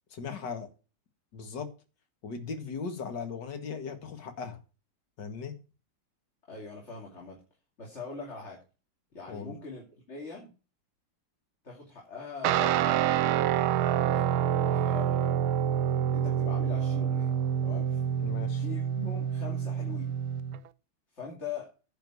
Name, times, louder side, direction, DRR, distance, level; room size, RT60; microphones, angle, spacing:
voice 1, 0.1-0.7 1.3-1.7 2.2-4.6 5.2-5.6 9.3-9.5 18.2-18.6, left 5 dB, 60° left, 2.4 m, -38 dB
voice 2, 6.5-7.4 7.8-8.6 9.1-10.5 11.6-13.2 13.5-15.4 16.1-17.3 17.6-18.0 18.6-20.1 21.1-21.7, left 4 dB, 35° left, 3.1 m, -42 dB
Guitar, 12.4-20.6, right 9 dB, 90° right, 1.6 m, -27 dB
10.5 x 5.2 x 7.9 m
omnidirectional pair, 2.2 m